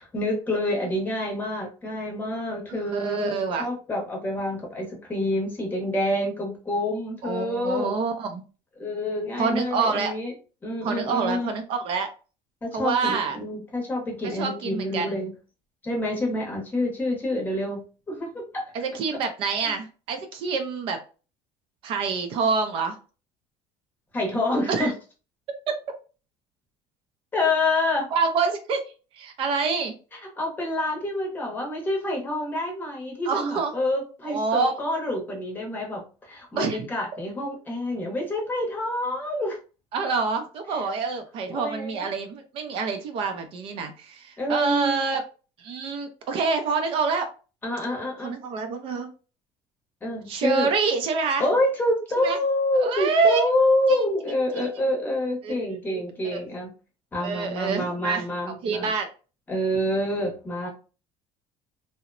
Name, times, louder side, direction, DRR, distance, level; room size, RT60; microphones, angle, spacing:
voice 1, 0.0-8.0 8.8-10.3 10.6-11.5 12.6-15.3 15.8-17.8 18.1-18.7 24.1-24.9 27.3-28.1 30.4-39.6 40.7-40.9 41.5-42.1 44.4-45.0 47.6-48.4 50.0-50.7 51.4-56.7 57.1-58.9 59.5-60.7, left 1 dB, 15° left, 0 dB, 0.7 m, -27 dB
voice 2, 2.7-3.7 7.2-8.4 9.4-10.1 10.8-12.1 12.7-13.4 14.4-15.2 18.7-21.0 21.8-22.9 24.7-24.9 25.7-25.8 28.1-28.8 29.1-29.9 33.3-33.7 34.3-34.7 36.6-36.9 39.9-45.2 45.6-47.3 48.2-49.1 50.3-51.4 52.2-52.4 52.8-53.5 53.9-54.1 54.6-54.7 55.4-56.1 56.3-56.4 57.2-58.2 58.6-59.1 60.6-60.7, right 4 dB, 50° right, 6 dB, 0.4 m, -26 dB
2.8 x 2.0 x 2.4 m, 0.35 s
cardioid pair, 165°, 12 cm